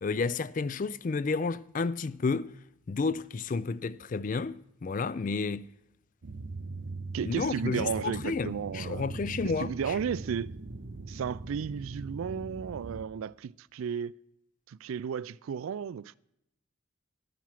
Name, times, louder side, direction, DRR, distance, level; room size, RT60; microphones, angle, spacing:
voice 1, 0.0-2.5 2.9-5.7 7.2-10.0, left 4 dB, 40° left, 0.3 m, -31 dB
sound 1, 6.2-13.0, right 3 dB, 60° right, 0.7 m, -41 dB
voice 2, 7.1-9.1 9.6-10.5 11.1-14.2 14.7-16.2, right 7 dB, 75° right, 0.3 m, -34 dB
12.5 x 9.3 x 5.8 m
head